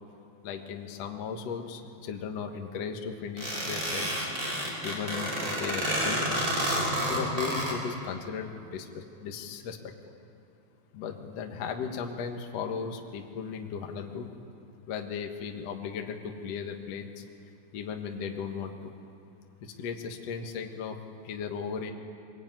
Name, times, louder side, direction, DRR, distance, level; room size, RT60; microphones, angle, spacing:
voice 1, 0.4-4.3 4.8-6.2 7.1-9.8 10.1-10.2 10.9-14.3 14.9-17.2 17.7-18.9 19.6-21.0 21.2-21.9, left 6 dB, 60° left, 3 dB, 1.8 m, -36 dB
sound 1, 3.4-7.7, right 1 dB, 20° right, 4.5 m, -29 dB
22.5 x 21.0 x 9.3 m, 2.7 s
omnidirectional pair, 4.8 m